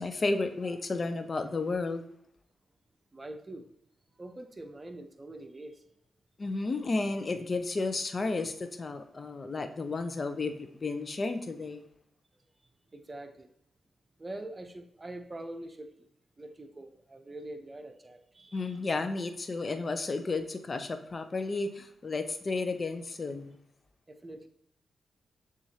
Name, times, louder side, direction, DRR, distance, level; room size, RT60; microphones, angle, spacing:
voice 1, 0.0-2.0 6.4-11.9 18.5-23.6, left 3 dB, 45° left, 0.5 m, -32 dB
voice 2, 3.1-3.7 4.2-5.8 12.3-12.5 12.9-13.5 14.2-16.1 16.4-18.8 24.1-24.5, right 1 dB, 30° right, 0.7 m, -44 dB
6.9 x 2.5 x 2.8 m
supercardioid pair, 45°, 0 cm